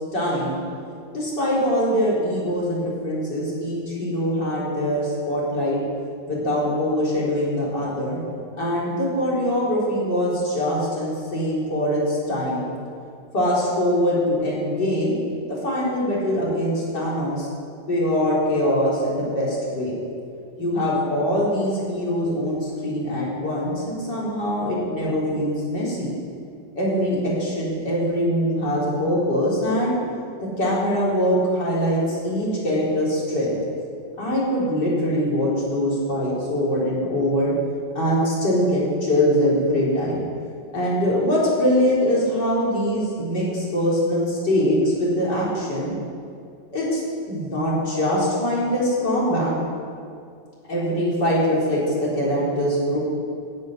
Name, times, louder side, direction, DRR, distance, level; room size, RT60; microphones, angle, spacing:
voice 1, 0.1-0.6 1.1-5.8 6.3-8.2 8.6-12.6 13.3-15.2 15.5-17.5 17.9-19.9 20.6-26.1 26.8-29.9 30.4-33.6 34.2-37.5 37.9-40.2 40.7-45.9 46.7-47.0 47.3-49.5 50.7-53.0, equal, 65° left, -6 dB, 4.8 m, -23 dB
11.5 x 8.9 x 9.8 m, 2.3 s
omnidirectional pair, 2.0 m